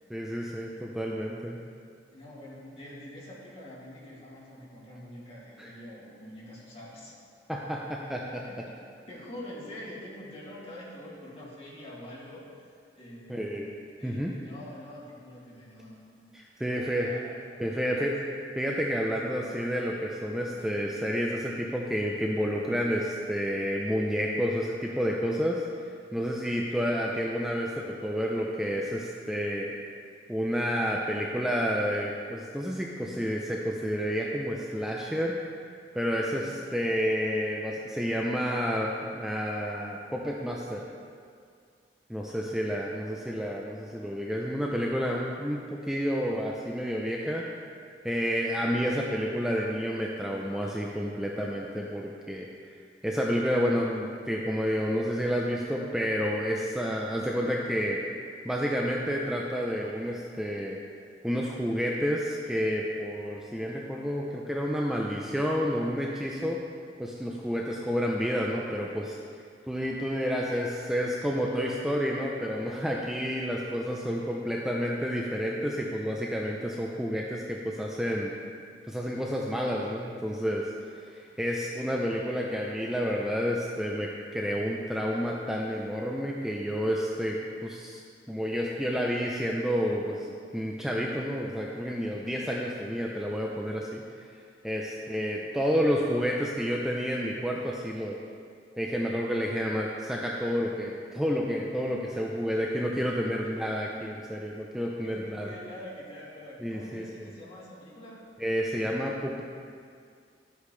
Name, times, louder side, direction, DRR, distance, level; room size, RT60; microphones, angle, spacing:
voice 1, 0.1-1.6 5.6-5.7 7.5-8.4 13.3-13.7 14.0-14.3 16.3-17.1 17.6-18.2 18.6-25.7 26.1-29.7 30.3-35.4 35.9-40.8 42.1-47.4 48.0-52.5 53.0-58.0 58.4-60.8 61.2-66.6 67.0-69.2 69.7-78.3 78.9-80.7 81.0-88.0 88.3-94.0 94.6-98.2 98.8-105.5 106.6-107.0 108.4-109.4, equal, 5° right, -2 dB, 0.5 m, -30 dB
voice 2, 2.1-7.1 8.5-8.6 9.1-12.7 12.9-13.7 14.0-16.3 16.7-18.4 42.3-42.8 43.9-44.9 63.2-63.4 95.0-95.9 103.2-103.6 105.0-108.3, left 1 dB, 35° left, -7 dB, 2.3 m, -46 dB
12.0 x 8.2 x 3.3 m, 2.2 s
head